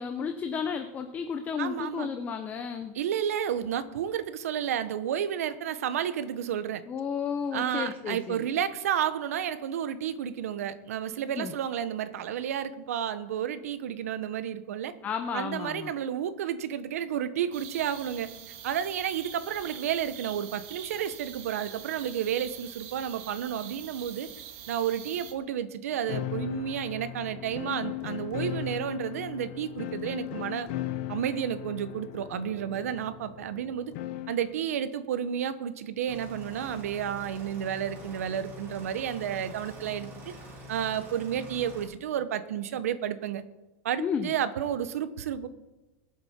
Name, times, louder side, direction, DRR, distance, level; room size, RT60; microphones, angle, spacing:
voice 1, 0.0-3.0 6.9-8.4 11.4-11.5 15.0-15.9 44.0-44.3, left 6 dB, 20° left, 7 dB, 0.7 m, -32 dB
voice 2, 1.6-2.1 2.9-6.8 7.5-14.9 15.3-18.3 18.6-24.3 24.7-30.7 31.1-33.9 34.3-40.3 40.7-43.4 43.8-45.5, right 9 dB, 90° right, 12 dB, 1.0 m, -31 dB
sound 1, 17.5-25.3, right 9 dB, 55° right, 1.6 m, -45 dB
sound 2, 26.1-34.5, left 13 dB, 55° left, 0.9 m, -37 dB
sound 3, 36.1-41.8, left 1 dB, 30° right, 4.1 m, -45 dB
21.0 x 7.8 x 4.4 m, 1.0 s
supercardioid pair, 150°, 8 cm